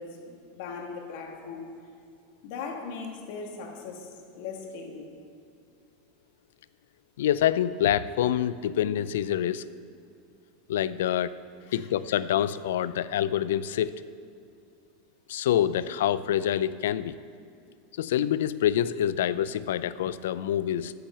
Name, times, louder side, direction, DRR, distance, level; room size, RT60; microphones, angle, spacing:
voice 1, 0.0-1.7 2.4-5.1 11.6-11.9 12.9-13.0, left 5 dB, 65° left, 2 dB, 1.7 m, -39 dB
voice 2, 7.2-9.6 10.7-11.3 11.7-13.9 15.3-17.1 17.9-20.9, left 10 dB, 80° left, 16 dB, 0.3 m, -26 dB
8.6 x 6.1 x 7.8 m, 2.3 s
supercardioid pair, 120°, 0 cm